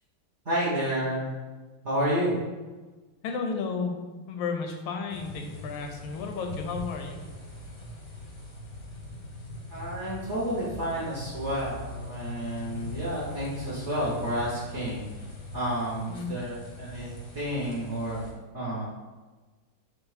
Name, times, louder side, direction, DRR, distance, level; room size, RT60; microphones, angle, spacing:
voice 1, 0.4-1.3 1.8-2.4 9.7-15.0 15.5-18.3 18.5-18.8, equal, 55° right, -7 dB, 0.7 m, -30 dB
voice 2, 3.2-4.0 4.3-7.2 16.1-16.3, left 5 dB, 80° left, 4 dB, 1.4 m, -33 dB
sound 1, 5.1-18.3, left 1 dB, 60° left, 0.9 m, -41 dB
4.5 x 2.3 x 4.7 m, 1.3 s
omnidirectional pair, 2.3 m